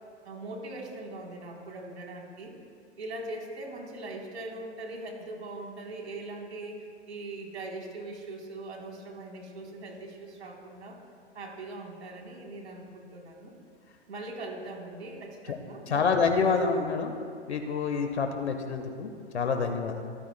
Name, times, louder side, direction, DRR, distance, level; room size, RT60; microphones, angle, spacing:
voice 1, 0.2-2.5 3.0-11.0 11.3-13.5 14.1-16.3, right 2 dB, 75° right, 0 dB, 3.8 m, -41 dB
voice 2, 15.9-17.1 17.5-20.1, left 5 dB, 75° left, 6 dB, 1.4 m, -27 dB
28.0 x 14.5 x 2.3 m, 2.2 s
figure-of-eight pair, 105°, 34 cm